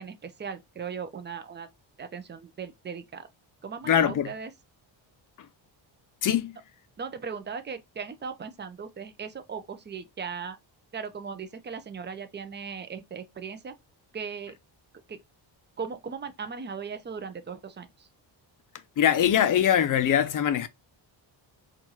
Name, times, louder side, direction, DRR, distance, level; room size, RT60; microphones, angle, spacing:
voice 1, 0.0-1.7 2.0-3.3 3.6-4.5 7.0-10.6 10.9-13.7 14.1-14.6 15.1-15.2 15.8-18.1, right 6 dB, 25° right, 0.5 m, -38 dB
voice 2, 3.9-4.3 6.2-6.6 19.0-20.7, left 9 dB, 45° left, 0.5 m, -22 dB
4.5 x 2.5 x 2.8 m
cardioid pair, 120°, 47 cm